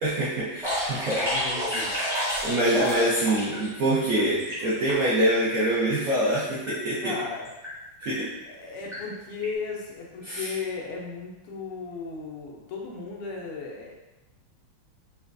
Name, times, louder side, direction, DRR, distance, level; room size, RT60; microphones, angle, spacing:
voice 1, 0.0-1.3 2.4-7.2 8.0-8.3 10.2-10.5, right 1 dB, 65° right, -10 dB, 0.8 m, -25 dB
sound 1, 0.6-3.7 4.0-5.2 5.8-5.9 6.1-6.4 6.7-6.8 7.4-7.7 8.0-8.2 8.9-9.0 9.4-9.5, equal, 5° right, 0.5 m, -29 dB
voice 2, 0.9-2.0 7.0-7.5 8.2-13.9, left 5 dB, 90° left, -2 dB, 1.6 m, -36 dB
4.2 x 2.3 x 2.5 m, 1.0 s
omnidirectional pair, 2.4 m